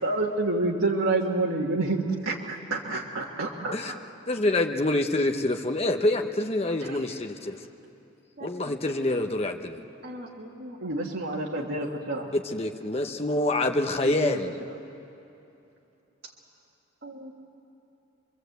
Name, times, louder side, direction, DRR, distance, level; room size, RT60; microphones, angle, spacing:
voice 1, 0.0-3.7 6.8-7.0 10.8-12.3 14.0-14.4, right 2 dB, 75° right, -2 dB, 1.7 m, -28 dB
voice 2, 4.3-7.6 8.4-9.8 12.3-14.6, left 2 dB, 30° left, 4 dB, 0.8 m, -26 dB
voice 3, 10.0-11.0 17.0-17.3, equal, 50° right, -2 dB, 1.9 m, -42 dB
26.0 x 22.5 x 8.0 m, 2.8 s
head